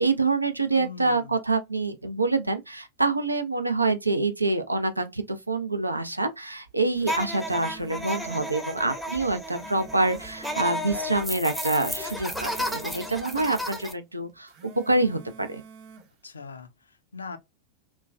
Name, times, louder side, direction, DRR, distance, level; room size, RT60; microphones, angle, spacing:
voice 1, 0.0-15.6, right 3 dB, 85° right, 0.5 m, -26 dB
voice 2, 0.7-1.3 16.2-17.4, left 5 dB, 75° left, 0.4 m, -41 dB
sound 1, 6.8-8.6 9.3-11.1 11.9-13.7 14.4-16.1, right 4 dB, 40° right, 0.7 m, -48 dB
sound 2, 7.0-13.9, equal, ahead, 0.6 m, -33 dB
3.0 x 2.2 x 2.3 m
figure-of-eight pair, 90°, 0 cm